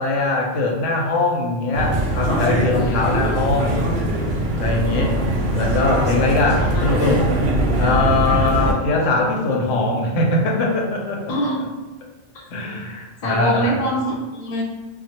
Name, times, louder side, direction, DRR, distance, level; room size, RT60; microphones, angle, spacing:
voice 1, 0.0-3.8 4.6-5.2 5.5-7.2 7.8-11.2 12.5-13.7, left 2 dB, 85° left, 0 dB, 0.9 m, -21 dB
sound 1, 1.7-8.7, right 1 dB, 65° right, 0.7 m, -21 dB
voice 2, 2.7-3.3 6.6-7.0 11.3-11.6 13.2-14.6, right 1 dB, 55° left, -2 dB, 0.4 m, -25 dB
2.2 x 2.0 x 2.8 m, 1.2 s
omnidirectional pair, 1.2 m